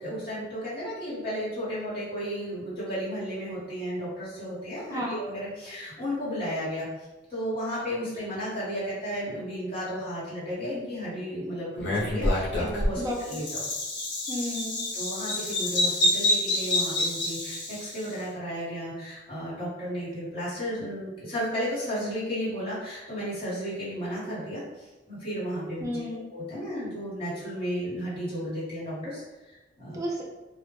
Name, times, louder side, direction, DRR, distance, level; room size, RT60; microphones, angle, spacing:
voice 1, 0.0-13.6 14.9-30.0, equal, 30° left, -11 dB, 1.2 m, -34 dB
Bird vocalization bird call bird song, 11.8-18.1, left 1 dB, 70° left, 0.6 m, -27 dB
voice 2, 14.3-14.9 25.8-26.2 29.9-30.3, equal, 20° right, -2 dB, 0.4 m, -32 dB
2.1 x 2.0 x 2.9 m, 1.1 s
head